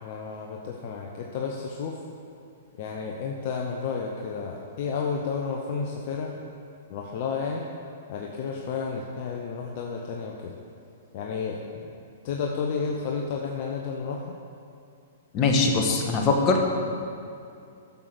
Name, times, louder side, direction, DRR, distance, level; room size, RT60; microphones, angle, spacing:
voice 1, 0.0-2.0 2.7-6.3 6.9-7.7 8.1-10.6 11.1-11.6 12.2-14.4, left 5 dB, 50° left, 0 dB, 1.0 m, -31 dB
voice 2, 15.3-16.6, left 3 dB, 30° left, 1 dB, 1.6 m, -22 dB
10.5 x 6.9 x 6.2 m, 2.5 s
figure-of-eight pair, 115°, 0 cm